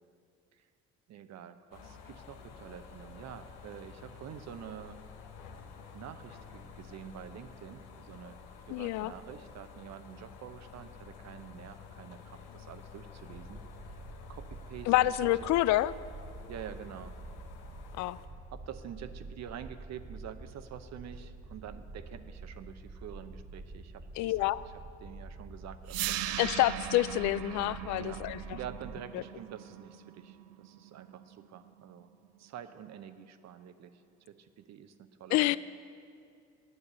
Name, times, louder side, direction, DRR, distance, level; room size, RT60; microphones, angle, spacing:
voice 1, 1.1-5.0 5.9-8.4 8.7-13.6 13.9-14.0 14.3-15.3 16.5-17.1 18.5-24.3 25.0-26.3 28.0-28.3 28.5-32.1 32.4-34.0 34.3-35.6, right 9 dB, 55° right, 11 dB, 0.9 m, -47 dB
sound 1, 1.7-18.3, left 6 dB, 85° left, 1.1 m, -51 dB
voice 2, 8.7-9.1 14.9-15.9 18.0-18.2 24.2-24.6 26.4-28.4 35.3-35.6, left 16 dB, 60° left, 18 dB, 0.5 m, -27 dB
sound 2, 13.3-29.0, right 2 dB, 20° right, 1.3 m, -47 dB
sound 3, 25.9-31.9, right 13 dB, 85° right, 0.6 m, -39 dB
11.0 x 9.4 x 6.8 m, 2.4 s
hypercardioid pair, 60°, 32 cm